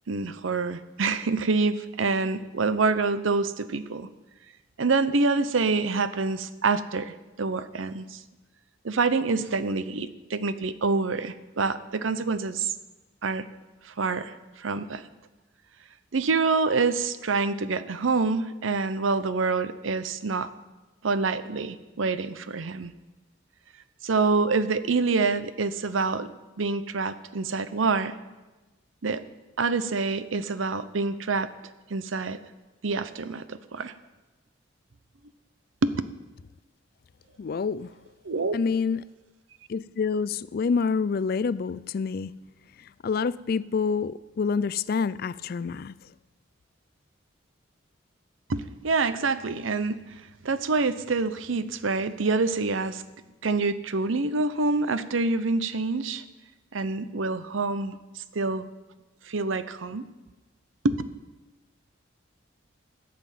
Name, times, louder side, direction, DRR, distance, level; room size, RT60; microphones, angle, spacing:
voice 1, 0.1-4.1 4.8-8.2 8.8-12.7 13.2-13.4 13.8-15.1 16.1-20.5 21.0-22.9 24.0-26.3 26.6-28.2 29.0-29.2 29.6-31.5 31.9-32.4 32.8-33.9 35.8-36.0 38.2-38.5 48.5-50.0 50.4-53.0 53.4-56.2 56.7-58.7 59.3-60.1 60.8-61.0, right 4 dB, 80° right, 0.7 m, -26 dB
voice 2, 37.4-37.9 38.5-39.0 39.7-42.3 43.0-45.9, left 5 dB, 50° left, 0.3 m, -27 dB
14.0 x 6.0 x 9.2 m
head